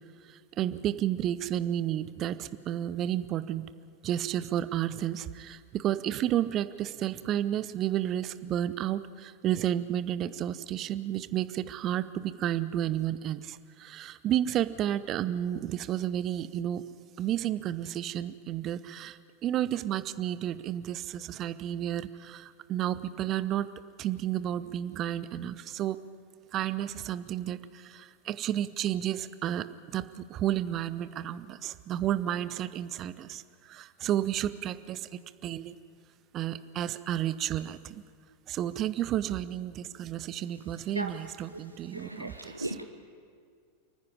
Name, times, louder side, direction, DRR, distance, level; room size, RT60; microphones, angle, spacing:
voice 1, 0.6-3.6 4.0-16.8 17.2-23.7 24.0-26.0 26.5-33.4 33.7-35.8 36.3-38.0 38.5-42.8, right 11 dB, 35° right, 15 dB, 0.7 m, -31 dB
voice 2, 41.9-42.8, right 1 dB, 85° right, 5 dB, 0.8 m, -36 dB
28.5 x 9.8 x 9.9 m, 2.2 s
figure-of-eight pair, 90°, 0 cm